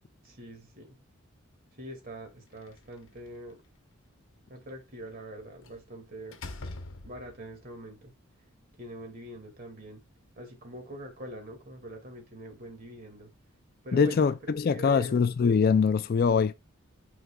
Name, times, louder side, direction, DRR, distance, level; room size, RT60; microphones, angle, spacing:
voice 1, 0.2-1.0 1.8-3.6 4.5-6.4 7.0-8.1 8.8-10.0 10.4-13.3 13.8-15.2, right 1 dB, 45° right, 2.2 m, -43 dB
Slam, 2.5-3.5 5.6-5.9 6.3-7.5, left 2 dB, 65° left, 0.8 m, -43 dB
voice 2, 13.9-16.5, left 5 dB, 45° left, 0.3 m, -23 dB
9.4 x 4.8 x 2.3 m
head